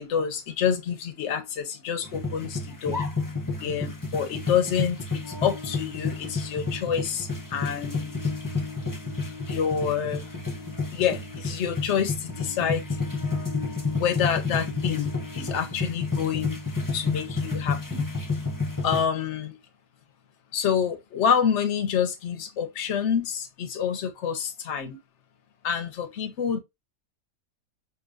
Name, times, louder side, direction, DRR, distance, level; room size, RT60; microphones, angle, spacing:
voice 1, 0.0-3.0 3.6-8.1 9.5-10.3 10.9-12.9 13.9-16.6 16.9-18.0 18.8-19.6 20.5-25.0 25.6-26.6, left 7 dB, 60° left, 1.0 m, -27 dB
sound 1, 2.0-19.0, left 3 dB, 20° left, 0.6 m, -30 dB
5.0 x 2.6 x 2.4 m
omnidirectional pair, 1.5 m